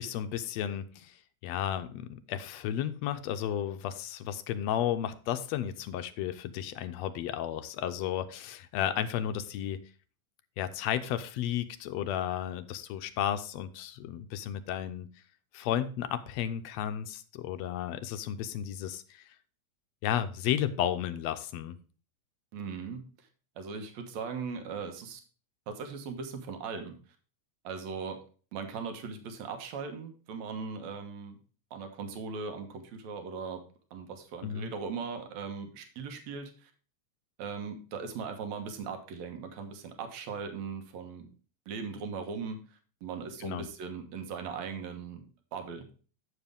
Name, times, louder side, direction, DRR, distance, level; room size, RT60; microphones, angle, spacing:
voice 1, 0.0-9.8 10.6-15.1 15.5-19.3 20.0-21.8 34.4-34.7 43.4-43.7, left 10 dB, 75° left, 11 dB, 1.6 m, -33 dB
voice 2, 22.5-23.1 23.6-25.2 25.7-27.0 27.6-28.2 28.5-31.4 31.7-33.6 33.9-36.7 37.4-41.3 41.7-45.9, right 5 dB, 70° right, 6 dB, 2.5 m, -39 dB
9.6 x 7.0 x 3.5 m, 0.39 s
omnidirectional pair, 3.4 m